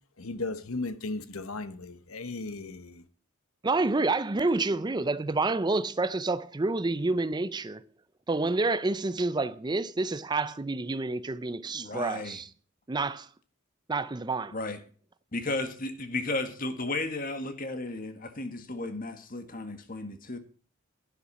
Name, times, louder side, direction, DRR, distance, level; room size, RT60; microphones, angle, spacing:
voice 1, 0.2-3.0, left 3 dB, 85° left, 1.2 m, -36 dB
voice 2, 3.6-7.8 8.3-12.5 12.9-13.3 13.9-14.6, right 3 dB, 20° right, 0.5 m, -28 dB
voice 3, 11.7-12.4 14.5-14.8 15.3-20.4, left 2 dB, 40° left, 1.8 m, -34 dB
11.5 x 11.0 x 4.2 m
head